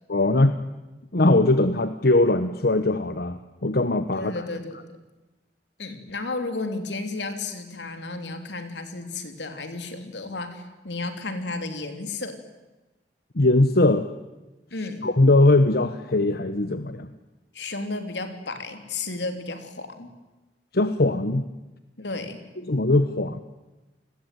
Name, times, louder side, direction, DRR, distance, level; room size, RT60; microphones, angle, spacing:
voice 1, 0.1-0.6 1.1-4.4 13.3-14.1 15.0-17.1 20.7-21.4 22.7-23.4, left 2 dB, 60° left, 10 dB, 1.1 m, -20 dB
voice 2, 4.2-4.8 5.8-12.4 14.7-15.1 17.5-20.1 22.0-22.4, left 3 dB, 80° left, 7 dB, 3.5 m, -33 dB
29.0 x 20.5 x 9.3 m, 1.1 s
head